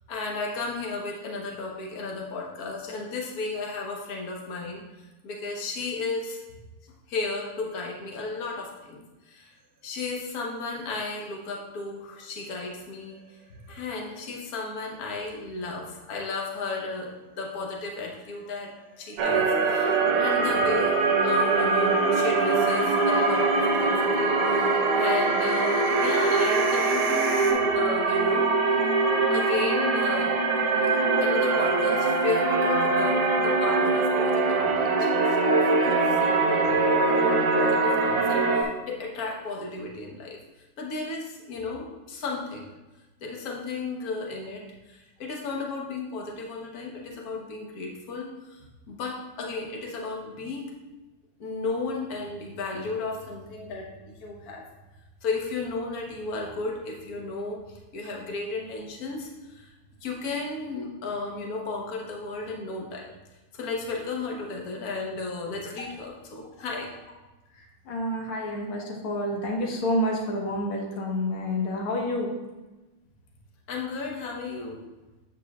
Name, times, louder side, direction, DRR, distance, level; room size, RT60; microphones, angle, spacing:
voice 1, 0.1-4.8 5.2-6.4 6.8-9.0 9.3-9.6 9.8-13.2 13.5-28.5 29.3-30.4 30.8-40.4 40.8-42.7 43.2-50.7 51.4-54.6 55.2-59.7 60.0-63.1 63.5-66.9 73.7-74.8, left 3 dB, 50° left, -1 dB, 1.3 m, -34 dB
sound 1, 12.6-13.5 13.8-13.9 14.3-14.4 18.5-27.5, right 5 dB, 60° right, 1.5 m, -35 dB
sound 2, 19.2-38.6, right 3 dB, 90° right, 1.8 m, -23 dB
voice 2, 67.9-72.3, left 1 dB, 80° left, -1 dB, 2.1 m, -28 dB
9.1 x 5.7 x 2.3 m, 1.1 s
omnidirectional pair, 2.4 m